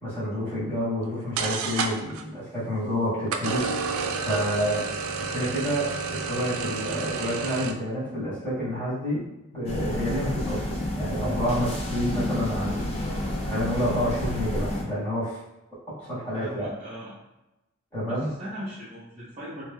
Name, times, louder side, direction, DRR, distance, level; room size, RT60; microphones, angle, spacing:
voice 1, 0.0-3.6 4.2-4.9 5.2-9.2 9.5-12.9 13.4-15.4 16.0-16.7 17.9-18.3, equal, 10° left, -13 dB, 1.5 m, -29 dB
sound 1, 1.0-1.1 1.4-2.2 3.3-7.7, right 5 dB, 90° right, 0.3 m, -30 dB
sound 2, 9.7-14.8, left 1 dB, 30° left, 0.6 m, -30 dB
voice 2, 16.3-17.2 18.0-19.6, equal, 30° right, -9 dB, 0.6 m, -39 dB
3.2 x 2.8 x 2.2 m, 0.97 s
head